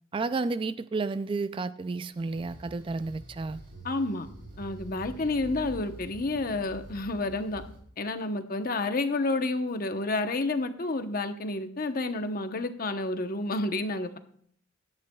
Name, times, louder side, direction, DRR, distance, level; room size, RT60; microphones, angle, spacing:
voice 1, 0.1-3.6, right 3 dB, 25° right, 0.3 m, -31 dB
sound 1, 2.1-7.8, right 1 dB, 55° right, 5.0 m, -46 dB
voice 2, 3.8-4.3 4.6-7.6 8.0-14.2, left 2 dB, 50° left, 0.9 m, -30 dB
16.5 x 11.5 x 2.3 m
head